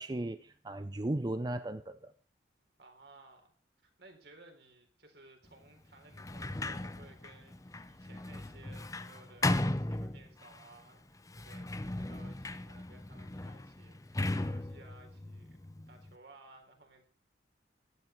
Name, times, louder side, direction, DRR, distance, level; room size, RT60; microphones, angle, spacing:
voice 1, 0.0-2.1, right 1 dB, 25° right, 11 dB, 0.5 m, -36 dB
voice 2, 2.8-3.5 3.8-15.6 15.9-17.1, right 2 dB, 65° right, 3 dB, 4.0 m, -58 dB
Sliding door, 6.1-10.6 11.3-16.1, left 2 dB, 20° left, 0.7 m, -37 dB
15.5 x 11.5 x 4.6 m, 0.38 s
head